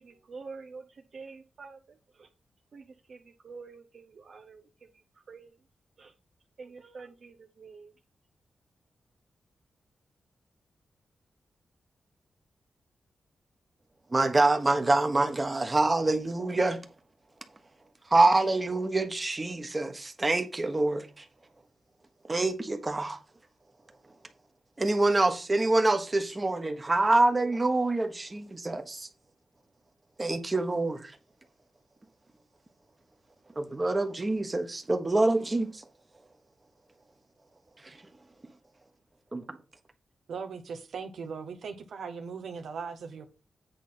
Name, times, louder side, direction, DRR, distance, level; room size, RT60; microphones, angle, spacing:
voice 1, 0.0-2.3 2.7-5.6 6.0-6.1 6.6-7.9, right 4 dB, 60° right, 0.8 m, -48 dB
voice 2, 14.1-16.8 18.1-21.2 22.3-23.2 24.8-29.1 30.2-31.1 33.5-35.8 37.8-38.0 39.3-39.6, right 2 dB, 25° right, 1.3 m, -26 dB
voice 3, 40.3-43.3, right 5 dB, 85° right, 1.2 m, -39 dB
8.5 x 4.1 x 5.7 m
wide cardioid pair, 95°, 0 cm